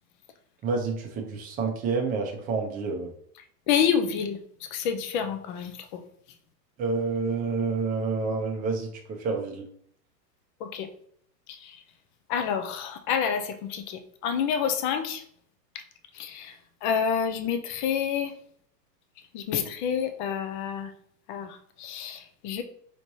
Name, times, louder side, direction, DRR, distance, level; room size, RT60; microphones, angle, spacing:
voice 1, 0.6-3.1 6.8-9.6, right 4 dB, 20° right, 2 dB, 0.5 m, -28 dB
voice 2, 3.7-4.4 4.7-6.0 10.6-10.9 11.5-11.8 12.3-15.2 15.7-15.8 16.1-18.3 19.3-20.9 21.3-22.6, left 7 dB, 35° left, 8 dB, 0.4 m, -28 dB
4.3 x 3.1 x 2.7 m, 0.63 s
hypercardioid pair, 115°, 49 cm